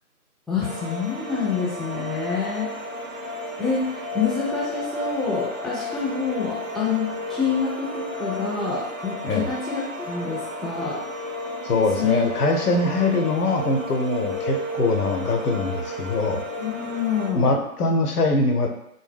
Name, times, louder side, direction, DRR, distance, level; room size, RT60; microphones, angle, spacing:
voice 1, 0.5-2.7 3.6-11.0 12.0-12.3 16.6-17.6, left 5 dB, ahead, -7 dB, 0.4 m, -27 dB
sound 1, 0.6-17.3, left 1 dB, 60° right, 0.5 m, -33 dB
voice 2, 11.6-16.4 17.3-18.7, left 2 dB, 80° left, 3 dB, 0.6 m, -22 dB
2.1 x 2.1 x 3.2 m, 0.81 s
figure-of-eight pair, 165°, 46 cm